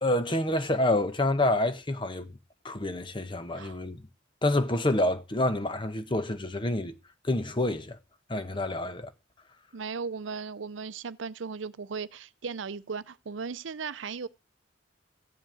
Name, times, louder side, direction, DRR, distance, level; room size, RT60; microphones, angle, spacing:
voice 1, 0.0-2.3 2.6-4.1 4.4-6.9 7.2-8.0 8.3-9.1, left 1 dB, 25° left, 1.0 m, -28 dB
voice 2, 9.7-14.3, right 5 dB, 75° right, 0.6 m, -37 dB
14.5 x 5.4 x 9.2 m
head